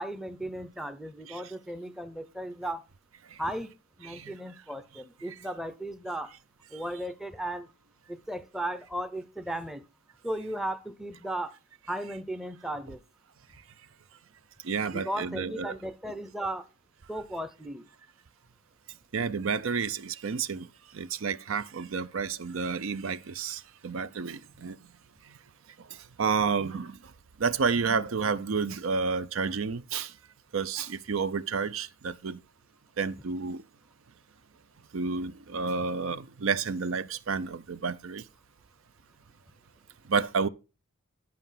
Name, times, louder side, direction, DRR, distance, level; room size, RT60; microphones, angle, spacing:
voice 1, 0.0-2.8 3.4-3.7 4.0-6.3 6.7-7.7 8.1-9.8 10.2-11.6 11.9-13.0 14.9-16.7 17.1-17.9, right 1 dB, ahead, 0.6 m, -36 dB
voice 2, 4.0-4.3 14.6-15.7 19.1-20.7 20.9-24.8 25.9-27.0 27.4-30.1 30.5-32.4 33.0-33.6 34.9-38.2 40.1-40.5, right 5 dB, 65° right, 0.5 m, -30 dB
11.5 x 5.5 x 5.7 m
head